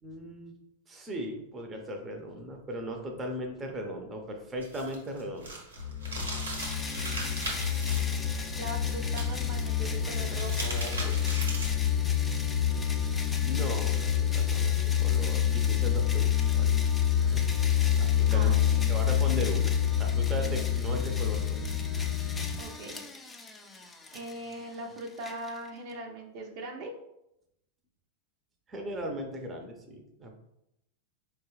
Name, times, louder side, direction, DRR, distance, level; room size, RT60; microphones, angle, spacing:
voice 1, 0.0-0.5 0.9-5.5 13.4-14.8 15.0-16.8 17.2-17.6 18.0-18.5 18.9-19.7 20.0-21.6 28.7-30.4, equal, 20° right, 3 dB, 0.7 m, -37 dB
sound 1, 4.6-8.0 9.1-9.6 10.1-11.9, right 2 dB, 90° right, 1.1 m, -38 dB
sound 2, 5.8-22.6, left 9 dB, 70° left, 0.7 m, -27 dB
sound 3, 6.6-25.9, left 3 dB, 15° left, 0.5 m, -42 dB
voice 2, 7.0-7.7 8.5-11.1 18.3-19.0 22.6-23.0 23.5-23.7 24.1-26.9, right 1 dB, 55° right, 2 dB, 0.6 m, -41 dB
4.4 x 2.3 x 3.1 m, 0.84 s
hypercardioid pair, 100°, 0 cm